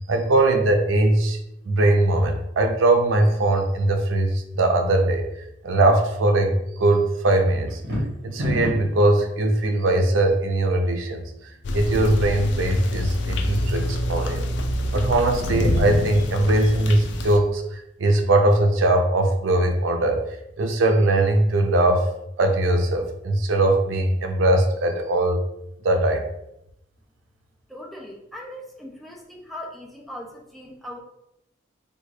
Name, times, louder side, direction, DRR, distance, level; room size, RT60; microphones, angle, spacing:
voice 1, 0.1-1.4 1.7-5.3 5.6-7.8 8.2-11.2 11.7-14.5 14.9-20.2 20.6-22.1 22.4-25.4 25.8-26.3, right 2 dB, 85° right, 5 dB, 0.5 m, -20 dB
sound 1, 7.7-9.0, equal, 60° right, 1.1 m, -25 dB
sound 2, 11.6-17.4, left 1 dB, 70° left, 0.4 m, -26 dB
voice 2, 27.7-31.0, left 1 dB, ahead, -2 dB, 0.4 m, -39 dB
3.4 x 2.3 x 3.1 m, 0.83 s
head